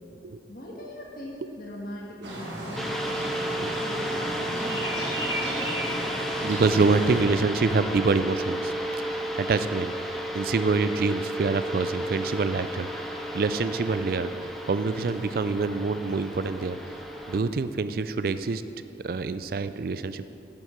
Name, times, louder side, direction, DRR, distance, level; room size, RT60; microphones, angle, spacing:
voice 1, 0.5-6.0, equal, 55° left, -3 dB, 1.3 m, -40 dB
sound 1, 2.2-7.2, right 1 dB, 85° right, 1.6 m, -34 dB
sound 2, 2.8-17.4, right 1 dB, ahead, 0.5 m, -33 dB
voice 2, 6.4-8.7 9.0-9.1 9.4-9.9 10.3-13.0 13.3-14.3 14.7-16.8 17.3-18.6 19.0-20.3, right 4 dB, 55° right, 12 dB, 0.3 m, -26 dB
9.8 x 7.7 x 5.0 m, 2.9 s
head